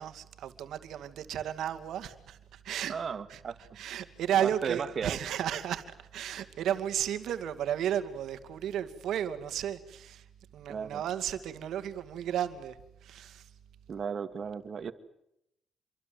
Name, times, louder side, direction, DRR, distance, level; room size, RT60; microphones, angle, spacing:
voice 1, 0.0-3.0 3.3-3.4 3.8-5.8 6.1-10.2 10.5-12.8 13.0-13.5, right 10 dB, 75° right, 2.4 m, -33 dB
voice 2, 2.9-3.6 4.4-5.2 10.7-11.0 13.9-14.9, right 6 dB, 50° right, 2.2 m, -35 dB
28.5 x 23.5 x 8.0 m
cardioid pair, 90°, 0 cm